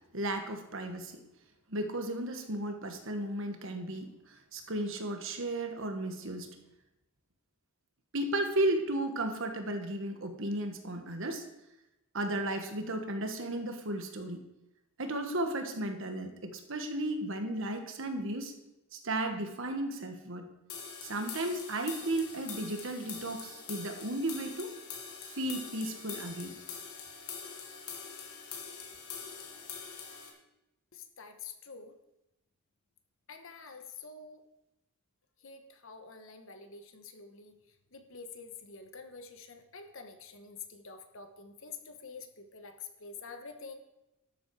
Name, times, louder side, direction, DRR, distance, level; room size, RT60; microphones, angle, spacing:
voice 1, 0.1-1.2 1.7-6.5 8.1-11.4 12.1-14.4 15.0-18.5 18.9-20.5 21.0-24.7 25.3-26.5, right 1 dB, 60° right, 5 dB, 1.5 m, -34 dB
sound 1, 20.7-30.3, left 6 dB, 80° left, 2.3 m, -44 dB
voice 2, 30.9-31.9 33.3-34.4 35.4-37.5 37.9-43.7, left 5 dB, 60° left, 7 dB, 1.2 m, -47 dB
12.5 x 8.0 x 4.8 m, 0.92 s
head